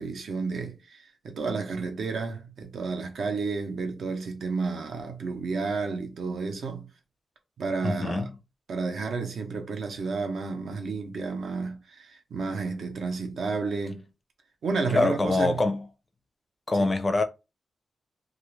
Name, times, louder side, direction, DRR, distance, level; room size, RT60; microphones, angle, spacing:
voice 1, 0.0-6.9 7.6-8.2 8.7-14.1 14.6-15.6 16.8-16.9, right 4 dB, 65° right, 0.7 m, -31 dB
voice 2, 7.8-8.3 14.9-15.8 16.7-17.2, left 2 dB, 20° left, 0.4 m, -24 dB
2.4 x 2.4 x 3.1 m
wide cardioid pair, 180°, 0 cm